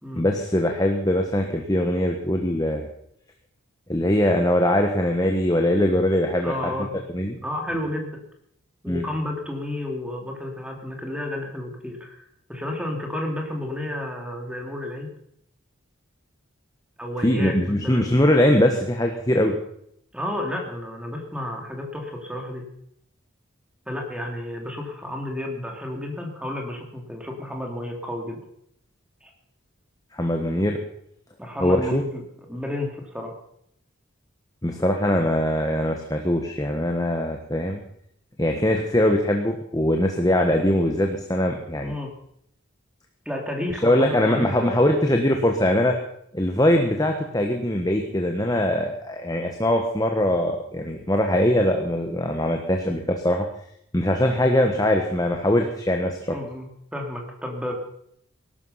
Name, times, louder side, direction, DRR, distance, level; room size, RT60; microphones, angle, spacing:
voice 1, 0.1-2.9 3.9-6.7 7.1-7.4 8.9-9.0 17.2-19.6 30.1-30.8 31.6-32.0 34.6-37.8 38.4-41.9 43.8-45.9 46.3-53.4 53.9-56.2, left 1 dB, 15° left, 3 dB, 1.4 m, -22 dB
voice 2, 6.4-6.9 7.4-8.2 8.8-12.2 12.5-15.1 17.0-18.1 20.1-22.7 23.9-28.4 29.2-29.3 31.4-32.2 32.5-33.4 41.8-42.1 43.2-44.7 56.3-57.7, left 1 dB, 5° right, 1 dB, 3.0 m, -31 dB
19.5 x 12.0 x 5.8 m, 0.70 s
head